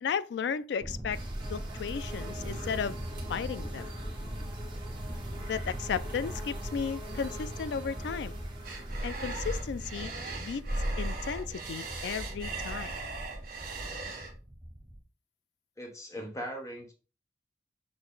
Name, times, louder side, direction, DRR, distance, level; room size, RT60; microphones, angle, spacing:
voice 1, 0.0-1.2 1.5-3.0 3.3-3.9 5.5-8.3 9.0-10.1 10.4-10.6 11.0-13.0, left 6 dB, 70° left, 0.3 m, -34 dB
Thunder, 0.8-15.0, equal, 10° right, 0.5 m, -42 dB
sound 1, 1.1-11.7, right 1 dB, 30° right, 1.4 m, -42 dB
sound 2, 8.6-14.3, right 2 dB, 50° right, 1.3 m, -37 dB
voice 2, 15.8-16.9, equal, 15° left, 1.0 m, -39 dB
6.1 x 2.2 x 3.8 m
head